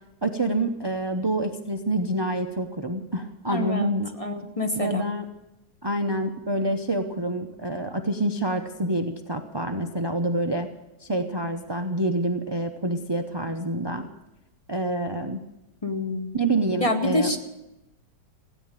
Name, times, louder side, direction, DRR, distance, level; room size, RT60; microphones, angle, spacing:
voice 1, 0.2-4.1 4.7-5.3 5.8-10.7 11.0-14.1 14.7-15.4 16.3-17.3, right 1 dB, 35° right, 6 dB, 0.4 m, -27 dB
voice 2, 3.5-5.0 15.8-16.3 16.8-17.4, left 2 dB, 20° left, 5 dB, 1.1 m, -26 dB
16.5 x 9.4 x 8.9 m, 0.95 s
omnidirectional pair, 1.9 m